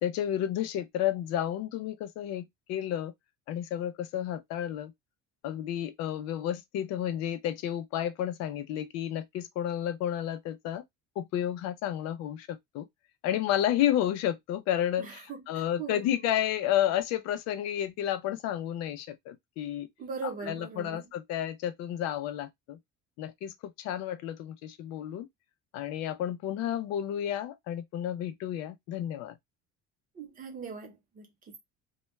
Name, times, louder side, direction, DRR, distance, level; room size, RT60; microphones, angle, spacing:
voice 1, 0.0-3.1 3.5-4.9 5.4-10.8 11.2-12.9 13.2-15.2 15.5-19.9 20.4-22.8 23.2-25.3 25.7-29.3, left 11 dB, 60° left, 0.5 m, -31 dB
voice 2, 15.0-16.2 20.0-21.1 30.1-31.6, right 5 dB, 30° right, 0.7 m, -41 dB
2.2 x 2.1 x 3.0 m
cardioid pair, 175°, 29 cm